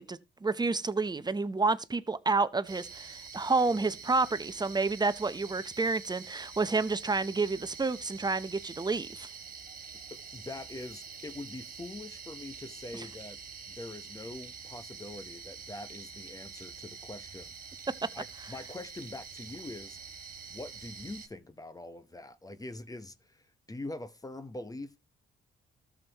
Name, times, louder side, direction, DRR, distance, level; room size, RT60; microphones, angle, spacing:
voice 1, 0.0-9.3 12.9-13.0, right 3 dB, 20° right, 0.8 m, -29 dB
sound 1, 2.7-21.3, right 5 dB, 45° right, 2.1 m, -46 dB
voice 2, 10.1-13.4 13.7-17.5 18.1-20.0 20.5-25.0, left 2 dB, 20° left, 0.9 m, -43 dB
13.5 x 7.2 x 2.9 m
cardioid pair, 90°, 20 cm